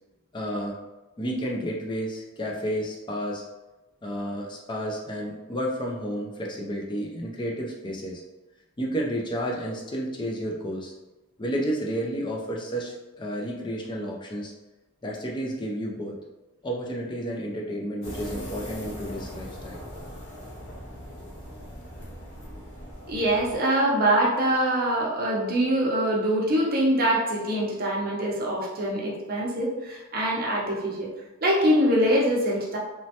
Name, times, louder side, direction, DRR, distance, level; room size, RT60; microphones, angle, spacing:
voice 1, 0.3-0.8 1.2-3.4 4.0-8.2 8.8-10.9 11.4-14.5 15.0-16.2 16.6-19.8 21.2-21.3, equal, 20° left, -2 dB, 0.4 m, -31 dB
sound 1, 18.0-23.6, equal, 60° left, 0.8 m, -40 dB
voice 2, 23.1-31.1 31.4-32.8, right 1 dB, 45° right, -3 dB, 0.6 m, -24 dB
3.0 x 2.2 x 2.7 m, 1.1 s
head